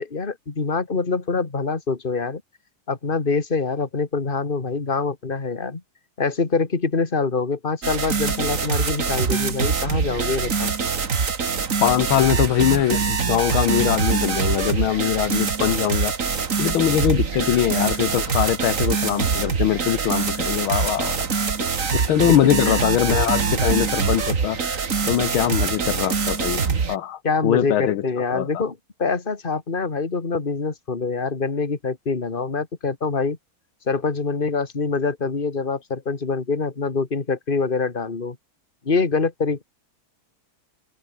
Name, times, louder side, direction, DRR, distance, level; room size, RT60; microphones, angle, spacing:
voice 1, 0.0-2.4 2.9-5.8 6.2-10.8 21.6-21.7 22.1-22.9 27.2-33.4 33.9-38.4 38.8-39.6, left 4 dB, 25° left, 2.3 m, -25 dB
sound 1, 7.8-27.0, right 5 dB, 40° right, 2.1 m, -24 dB
voice 2, 11.8-16.1 16.6-21.2 21.9-24.6 25.1-28.0 28.3-28.6, left 11 dB, 80° left, 1.8 m, -22 dB
omnidirectional pair, 2.3 m